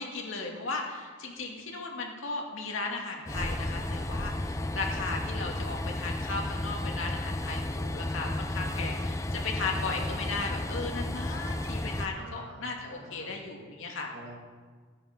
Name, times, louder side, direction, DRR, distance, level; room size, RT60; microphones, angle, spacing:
voice 1, 0.0-14.1, left 3 dB, 80° left, 0 dB, 2.4 m, -36 dB
Train, 3.3-12.1, left 1 dB, 15° left, 0.6 m, -33 dB
voice 2, 12.1-13.4 14.1-14.4, right 1 dB, 75° right, 1 dB, 2.1 m, -47 dB
16.0 x 10.0 x 5.2 m, 1.5 s
head